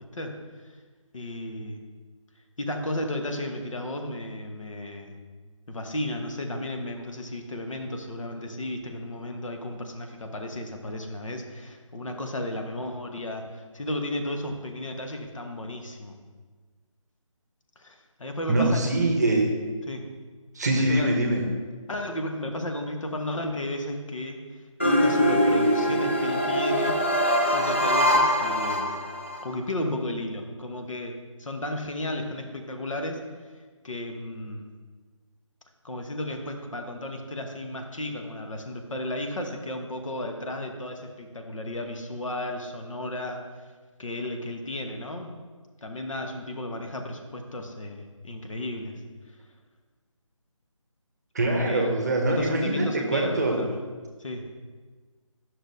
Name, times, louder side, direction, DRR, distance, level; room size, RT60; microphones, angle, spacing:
voice 1, 1.1-1.9 2.6-5.2 5.7-16.2 17.8-18.9 19.9-20.1 20.7-21.1 21.9-24.4 24.8-27.0 27.4-29.1 29.4-33.2 33.8-34.7 35.8-43.4 44.0-45.3 45.8-49.0 51.4-51.9 52.3-53.8 54.2-54.4, left 1 dB, 70° left, 4 dB, 1.1 m, -34 dB
voice 2, 18.5-19.5 20.5-21.4 51.3-53.7, right 2 dB, 30° right, 2 dB, 0.9 m, -24 dB
sound 1, 24.8-29.4, equal, 25° left, 0.4 m, -23 dB
9.8 x 6.0 x 2.7 m, 1.4 s
figure-of-eight pair, 170°, 17 cm